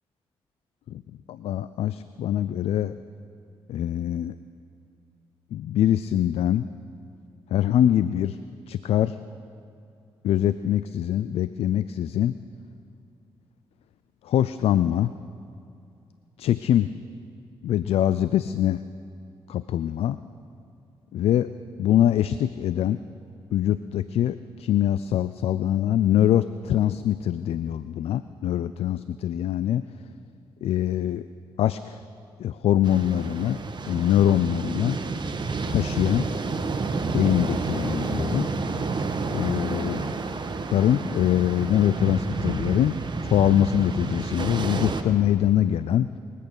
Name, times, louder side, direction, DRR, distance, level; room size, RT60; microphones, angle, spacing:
voice 1, 1.3-2.9 3.7-4.3 5.5-6.7 7.5-8.4 8.7-9.2 10.2-12.3 14.2-15.1 16.4-16.9 17.6-18.8 19.5-20.2 21.1-21.5 21.8-23.0 23.5-29.8 30.6-31.3 31.6-32.0 32.4-33.6 33.9-35.0 35.7-36.3 37.1-38.5 39.3-40.0 40.7-43.0 43.2-46.1, left 11 dB, 75° left, 14 dB, 0.4 m, -23 dB
sound 1, 32.8-45.0, right 4 dB, 45° right, 1.3 m, -30 dB
22.5 x 8.4 x 6.6 m, 2.6 s
supercardioid pair, 55°, 10 cm